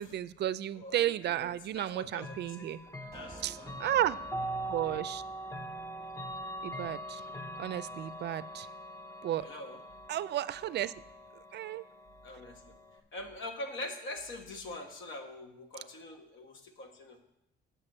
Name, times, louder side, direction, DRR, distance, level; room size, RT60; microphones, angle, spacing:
voice 1, 0.0-2.8 3.4-4.2 4.7-5.2 6.6-7.2 7.6-8.7 9.2-9.5 10.1-10.9 11.5-11.8, right 12 dB, 60° right, 16 dB, 0.4 m, -33 dB
voice 2, 0.7-2.8 3.1-3.7 9.4-9.8 12.2-12.6 13.1-17.2, left 1 dB, 75° left, 4 dB, 1.4 m, -44 dB
Chime / Clock, 2.2-13.0, right 1 dB, 15° left, 0.8 m, -42 dB
sound 1, 3.1-7.5, right 3 dB, 15° right, 1.1 m, -54 dB
7.9 x 5.9 x 6.5 m, 0.85 s
cardioid pair, 90°, 20 cm